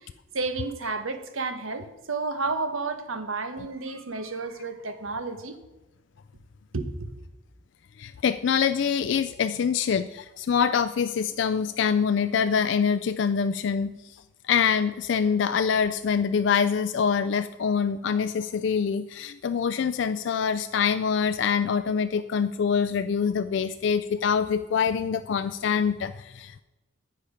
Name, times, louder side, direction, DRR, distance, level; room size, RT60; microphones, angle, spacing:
voice 1, 0.3-5.6 6.7-7.1, right 3 dB, 85° right, 9 dB, 1.1 m, -31 dB
voice 2, 8.0-14.2 14.5-26.6, left 6 dB, 60° left, 11 dB, 0.3 m, -25 dB
10.0 x 8.6 x 5.0 m, 1.1 s
head